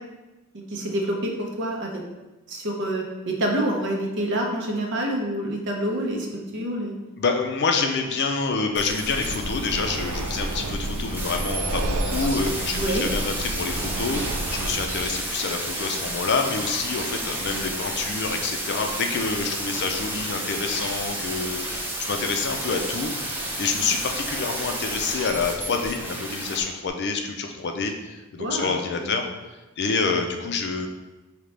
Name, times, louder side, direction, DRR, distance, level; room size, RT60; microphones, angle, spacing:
voice 1, 0.5-1.9 2.5-6.9 12.8-13.1 28.4-28.7 29.0-29.1, right 1 dB, 55° right, 1 dB, 0.8 m, -27 dB
voice 2, 7.2-23.3 23.6-29.3 29.8-30.9, left 4 dB, 50° left, 4 dB, 0.5 m, -27 dB
sound 1, 8.7-26.6 26.9-27.0, right 1 dB, 10° right, 0.6 m, -32 dB
Breathing, 9.0-15.1, right 2 dB, 90° right, 0.4 m, -30 dB
5.1 x 2.8 x 3.3 m, 1.1 s
head